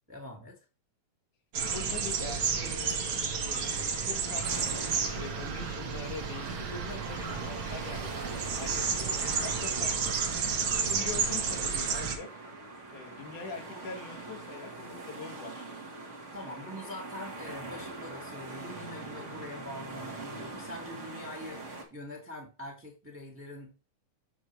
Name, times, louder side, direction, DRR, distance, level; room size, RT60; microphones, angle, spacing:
voice 1, 0.1-0.6 16.3-21.6 21.9-23.7, left 1 dB, 5° right, 2 dB, 1.2 m, -44 dB
sound 1, 1.5-12.2, right 6 dB, 55° right, 1.6 m, -31 dB
voice 2, 1.6-10.2 10.8-12.4 12.9-15.7 16.4-16.7, left 5 dB, 85° left, 4 dB, 2.9 m, -44 dB
sound 2, 4.4-21.8, right 2 dB, 35° right, 1.2 m, -43 dB
7.0 x 6.5 x 3.1 m, 0.31 s
omnidirectional pair, 3.4 m